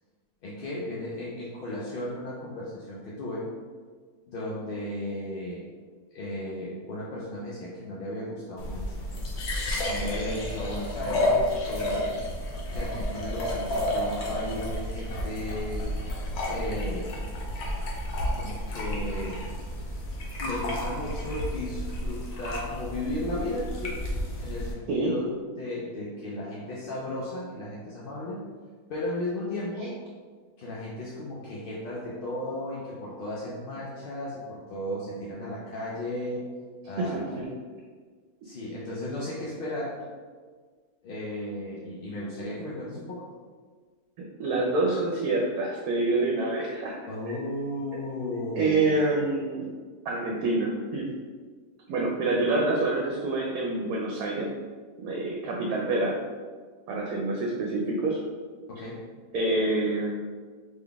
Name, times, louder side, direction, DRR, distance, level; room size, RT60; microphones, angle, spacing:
voice 1, 0.4-3.5 4.3-5.7 6.1-8.9 9.8-12.2 12.7-15.9 16.4-17.2 18.3-19.4 20.4-24.1 24.4-28.4 28.9-29.9 30.6-36.5 36.8-37.3 38.4-40.1 41.0-43.3 47.1-49.0 58.7-59.1, left 1 dB, 55° left, -6 dB, 0.6 m, -35 dB
sound 1, 8.6-24.7, left 1 dB, 75° left, 1.3 m, -31 dB
voice 2, 37.0-37.5 44.2-47.0 47.2-47.4 48.5-49.7 50.0-51.1 51.9-54.5 55.0-56.2 56.9-58.2 59.3-60.1, right 2 dB, 75° right, -1 dB, 1.0 m, -27 dB
3.8 x 3.0 x 3.4 m, 1.6 s
omnidirectional pair, 1.6 m